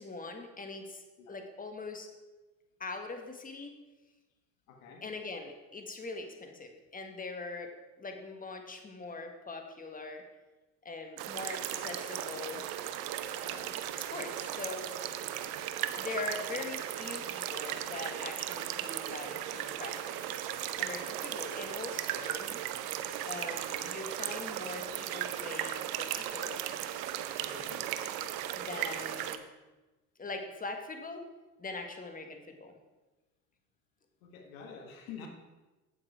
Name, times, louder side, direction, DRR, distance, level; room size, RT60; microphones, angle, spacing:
voice 1, 0.0-1.0 1.3-2.1 2.8-3.7 5.0-7.7 8.0-10.2 10.8-12.6 13.4-14.9 16.0-22.6 23.2-26.6 28.6-29.4 30.2-31.2 31.6-32.8, left 3 dB, 20° left, 5 dB, 1.5 m, -42 dB
voice 2, 4.7-5.1 27.4-27.9 34.2-35.3, left 6 dB, 85° left, 4 dB, 1.4 m, -48 dB
sound 1, 11.2-29.4, right 11 dB, 65° right, 0.8 m, -36 dB
8.9 x 7.5 x 4.7 m, 1.1 s
hypercardioid pair, 70°, 39 cm